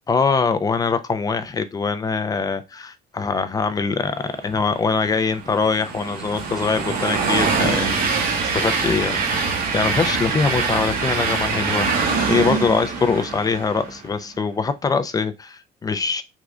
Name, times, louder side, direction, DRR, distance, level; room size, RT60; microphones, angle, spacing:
voice 1, 0.1-8.2 8.5-16.2, left 5 dB, 20° left, 0.4 m, -23 dB
Train, 4.7-14.1, right 4 dB, 60° right, 1.0 m, -24 dB
3.6 x 2.4 x 3.1 m
cardioid pair, 110°, 17 cm